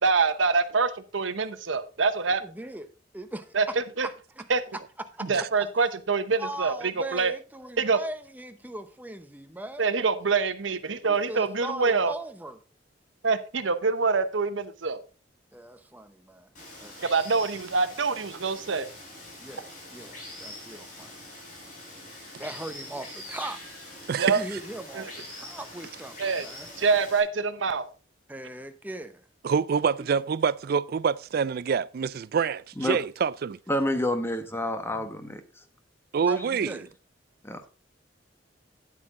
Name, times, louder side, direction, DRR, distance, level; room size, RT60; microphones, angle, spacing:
voice 1, 0.0-2.4 3.5-3.6 4.0-4.1 4.5-4.6 5.3-7.3 7.8-8.0 9.8-12.1 13.2-15.0 17.0-18.9 24.2-24.4 24.9-25.1 26.2-26.5 26.8-27.9, right 4 dB, 90° right, 0.9 m, -25 dB
voice 2, 2.4-2.9 3.1-3.5 4.0-4.5 5.2-5.3 6.4-9.9 11.1-12.6 15.5-16.5 16.8-17.0 19.4-21.1 22.4-23.6 24.3-26.8 28.3-29.3 30.0-30.1 36.2-36.9, right 1 dB, 10° right, 0.8 m, -39 dB
Water, 16.6-27.2, left 1 dB, 45° left, 5.1 m, -44 dB
voice 3, 24.1-24.4 29.4-33.6 36.1-36.8, right 6 dB, 55° right, 0.4 m, -26 dB
voice 4, 33.7-35.4 37.4-37.6, left 1 dB, 15° left, 1.1 m, -28 dB
9.8 x 8.3 x 3.7 m
head